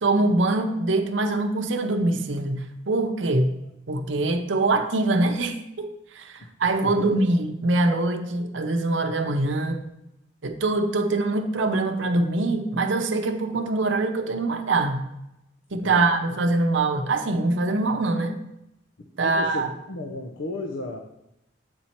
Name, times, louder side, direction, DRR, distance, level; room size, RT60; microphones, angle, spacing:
voice 1, 0.0-3.5 3.9-5.9 6.1-9.8 10.4-15.0 15.7-18.4 19.2-19.7, right 2 dB, 75° right, 6 dB, 0.7 m, -23 dB
voice 2, 6.8-7.2 15.7-16.2 19.0-21.0, left 2 dB, 85° left, 3 dB, 0.7 m, -34 dB
7.9 x 4.3 x 4.4 m, 0.86 s
head